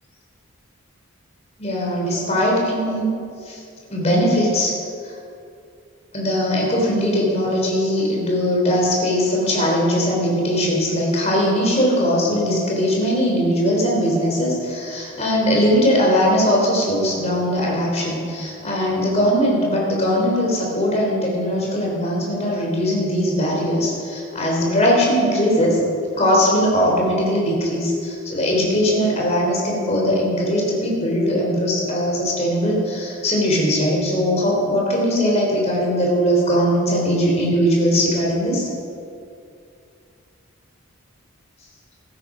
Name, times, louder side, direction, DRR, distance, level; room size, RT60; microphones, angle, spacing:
voice 1, 1.6-3.1 3.4-3.6 3.9-4.7 6.1-25.8 26.2-38.7, equal, 30° left, -3 dB, 3.5 m, -20 dB
15.5 x 12.0 x 5.0 m, 2.5 s
head